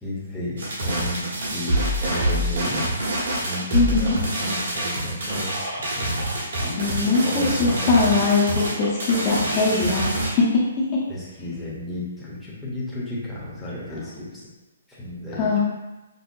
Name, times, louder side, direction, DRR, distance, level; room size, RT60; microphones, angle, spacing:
voice 1, 0.0-2.9 3.4-6.2 6.6-8.0 11.1-14.5 14.9-15.5, left 1 dB, 5° left, -9 dB, 0.8 m, -34 dB
sound 1, 0.6-10.3, right 1 dB, 75° right, 1.3 m, -26 dB
voice 2, 3.7-4.2 6.8-11.0 15.3-15.6, left 3 dB, 30° left, -6 dB, 0.7 m, -21 dB
5.3 x 2.0 x 2.6 m, 1.0 s
hypercardioid pair, 155°, 0 cm